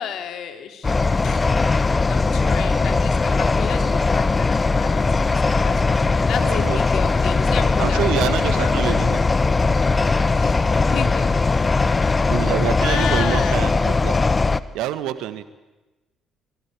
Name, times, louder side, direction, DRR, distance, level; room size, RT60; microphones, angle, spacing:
voice 1, 0.0-1.4 2.1-5.3 5.6-9.1 10.3-11.6 12.8-13.6 14.5-14.6, left 9 dB, 60° left, 6 dB, 2.9 m, -32 dB
sound 1, 0.8-14.6, left 3 dB, 30° left, 1.1 m, -19 dB
voice 2, 6.4-6.8 7.8-9.2 12.3-14.1 14.7-15.4, right 12 dB, 70° right, 13 dB, 1.6 m, -26 dB
26.0 x 22.0 x 8.7 m, 1.1 s
hypercardioid pair, 45°, 0 cm